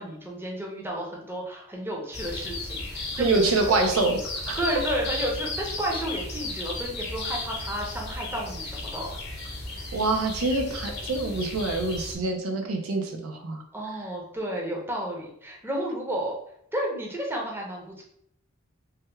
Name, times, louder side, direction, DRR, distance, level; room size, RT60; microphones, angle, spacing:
voice 1, 0.0-4.0 4.6-9.1 13.7-16.3 16.7-18.0, right 1 dB, 10° right, -1 dB, 0.6 m, -32 dB
sound 1, 2.1-12.1, left 2 dB, 50° left, 0.8 m, -35 dB
voice 2, 3.1-4.2 4.5-4.6 9.9-13.6, right 3 dB, 85° right, 3 dB, 0.5 m, -25 dB
3.3 x 2.2 x 3.1 m, 0.70 s
head